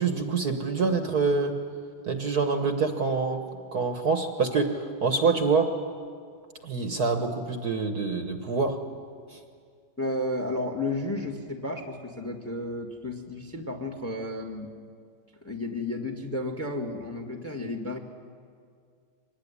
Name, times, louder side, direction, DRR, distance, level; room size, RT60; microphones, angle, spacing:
voice 1, 0.0-1.5 2.1-3.4 3.7-5.7 6.6-8.8 9.3-9.4, right 4 dB, 50° right, 6 dB, 1.6 m, -26 dB
voice 2, 10.0-14.7 15.4-18.0, left 2 dB, 5° left, 4 dB, 1.5 m, -32 dB
24.5 x 19.5 x 9.8 m, 2.2 s
omnidirectional pair, 2.4 m